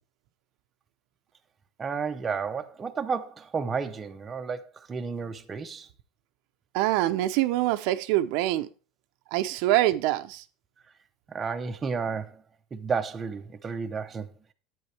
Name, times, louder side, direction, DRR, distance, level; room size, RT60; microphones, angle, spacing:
voice 1, 1.8-5.9 11.3-12.4 12.7-14.3, right 5 dB, 15° right, 0.6 m, -32 dB
voice 2, 6.7-8.7 9.3-10.4, right 15 dB, 55° right, 0.6 m, -25 dB
11.0 x 9.2 x 3.3 m
cardioid pair, 175°, 0 cm